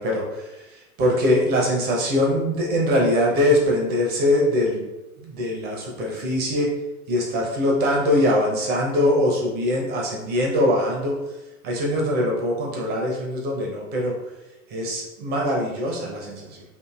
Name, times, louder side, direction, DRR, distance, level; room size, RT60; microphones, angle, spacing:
voice 1, 0.0-4.8 5.2-6.7 7.1-11.1 11.6-14.2 14.7-16.6, left 1 dB, 25° right, -1 dB, 0.4 m, -22 dB
2.6 x 2.5 x 2.3 m, 1.0 s
figure-of-eight pair, 85°, 45 cm